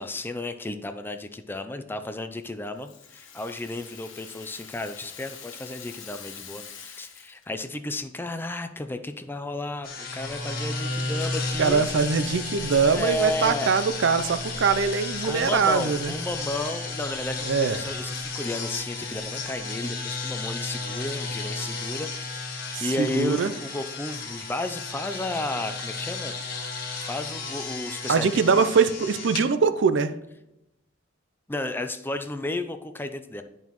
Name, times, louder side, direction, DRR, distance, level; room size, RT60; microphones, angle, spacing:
voice 1, 0.0-11.8 12.8-13.9 15.2-26.3 27.1-28.7 31.5-33.4, left 2 dB, 10° left, 8 dB, 0.4 m, -33 dB
Rattle (instrument), 2.4-7.5, left 7 dB, 70° left, 1.3 m, -45 dB
sound 1, 9.8-29.4, left 3 dB, 50° left, 1.5 m, -33 dB
voice 2, 11.6-16.1 17.5-17.8 22.7-23.5 28.1-30.1, right 5 dB, 60° right, 12 dB, 0.5 m, -22 dB
10.5 x 5.4 x 3.0 m, 0.86 s
head